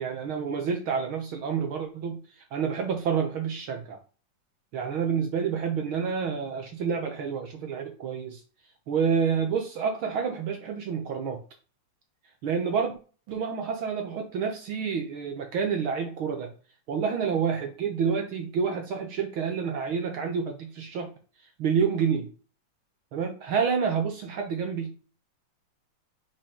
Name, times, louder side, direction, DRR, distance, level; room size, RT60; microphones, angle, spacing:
voice 1, 0.0-2.2 2.5-4.0 4.7-8.4 8.9-11.4 12.4-12.9 13.3-16.5 16.9-21.1 21.6-22.3 23.1-24.9, right 6 dB, 70° right, 4 dB, 1.2 m, -28 dB
6.8 x 5.1 x 3.6 m, 0.37 s
omnidirectional pair, 3.7 m